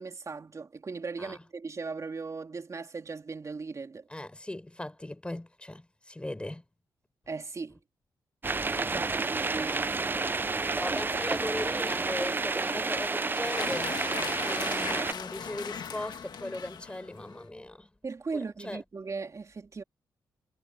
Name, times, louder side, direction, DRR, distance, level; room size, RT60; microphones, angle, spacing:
voice 1, 0.0-4.1 7.3-7.8 8.9-10.0 10.7-11.0 12.7-12.8 18.0-19.8, right 4 dB, 40° right, 3.3 m, -38 dB
voice 2, 4.1-6.7 8.9-9.2 10.6-14.0 14.4-17.9 18.3-18.8, left 1 dB, 15° left, 5.9 m, -39 dB
sound 1, 8.4-15.1, right 3 dB, 25° right, 0.6 m, -30 dB
sound 2, 13.3-17.4, left 7 dB, 65° left, 1.8 m, -39 dB
cardioid pair, 65°, 8 cm